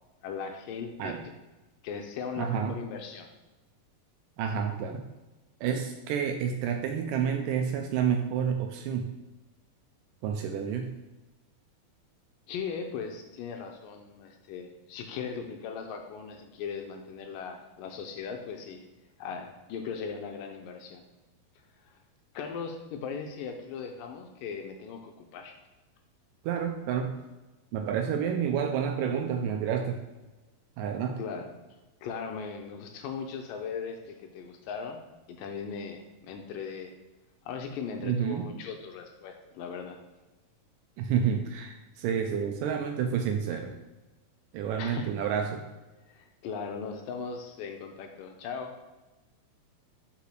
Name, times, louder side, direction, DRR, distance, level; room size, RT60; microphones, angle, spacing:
voice 1, 0.2-1.3 1.8-3.3 12.5-18.8 19.2-21.0 21.8-22.0 22.3-25.6 31.2-31.5 32.0-35.0 35.3-36.9 37.5-40.0 44.8-45.1 46.1-48.7, left 6 dB, 80° left, 4 dB, 2.2 m, -38 dB
voice 2, 2.4-2.8 4.4-5.0 5.6-9.1 10.2-10.9 26.5-27.1 27.7-30.0 30.8-31.2 38.0-38.5 41.0-43.7 44.5-45.6, right 7 dB, 80° right, 4 dB, 2.0 m, -29 dB
5.4 x 4.8 x 4.5 m, 1.1 s
omnidirectional pair, 4.2 m